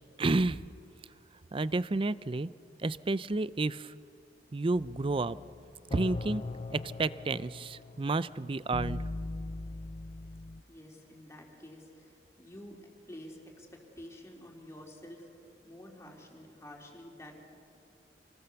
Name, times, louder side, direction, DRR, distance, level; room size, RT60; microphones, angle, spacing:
voice 1, 0.2-0.6 1.5-2.5 2.8-3.9 4.5-5.4 5.9-6.4 6.7-9.1, right 3 dB, 30° right, 17 dB, 0.5 m, -30 dB
sound 1, 4.7-10.6, left 2 dB, 35° left, 0.4 m, -40 dB
voice 2, 10.7-12.8 13.1-17.4, left 1 dB, 15° left, -1 dB, 3.6 m, -50 dB
28.0 x 20.0 x 7.0 m, 2.5 s
head